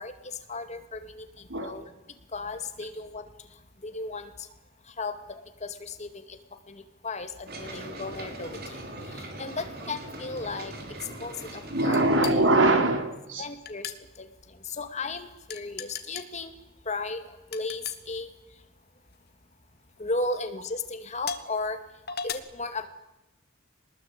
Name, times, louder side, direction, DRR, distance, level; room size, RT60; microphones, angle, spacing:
voice 1, 0.0-1.9 2.3-3.5 3.8-4.5 4.9-6.4 6.7-10.7 11.2-12.0 13.4-16.5 16.9-18.3 20.0-21.8 22.2-22.9, left 3 dB, 35° left, 8 dB, 2.3 m, -35 dB
sound 1, 7.5-12.6, right 1 dB, 50° right, 5.0 m, -41 dB
voice 2, 11.7-13.4, right 2 dB, 75° right, 6 dB, 4.0 m, -22 dB
sound 2, 11.9-12.4 13.7-14.0 15.5-16.3 17.5-18.0 19.0-19.3 20.0-20.1 21.2-21.5 22.1-22.3, left 7 dB, 55° left, 2.0 m, -36 dB
24.0 x 20.0 x 8.8 m, 0.97 s
head